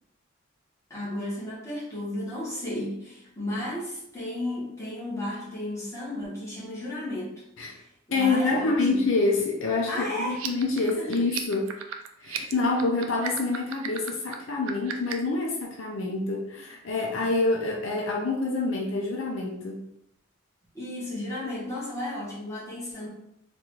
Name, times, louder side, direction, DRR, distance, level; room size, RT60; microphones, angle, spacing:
voice 1, 0.9-9.0 9.9-10.4 11.0-11.1 12.4-12.5 20.7-23.1, left 1 dB, 15° left, -7 dB, 1.2 m, -34 dB
voice 2, 8.1-11.7 12.2-19.8, left 3 dB, 65° left, 0 dB, 0.5 m, -27 dB
sound 1, 10.3-15.3, right 8 dB, 75° right, 0.4 m, -36 dB
3.7 x 2.4 x 3.1 m, 0.76 s
head